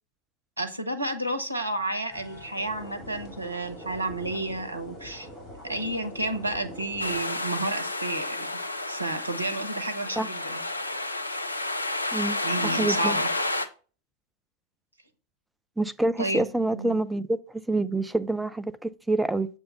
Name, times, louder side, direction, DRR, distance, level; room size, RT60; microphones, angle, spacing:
voice 1, 0.6-5.3 5.6-8.5 8.9-10.6 12.4-13.3 16.2-17.0, right 2 dB, 80° right, 0.7 m, -31 dB
sound 1, 2.1-7.2, equal, 20° left, 2.6 m, -43 dB
sound 2, 7.0-13.7, left 2 dB, 85° left, 0.5 m, -30 dB
voice 2, 12.8-13.2 15.8-17.4 17.7-19.5, right 2 dB, 5° right, 0.3 m, -26 dB
6.7 x 2.6 x 5.3 m
figure-of-eight pair, 90°, 0 cm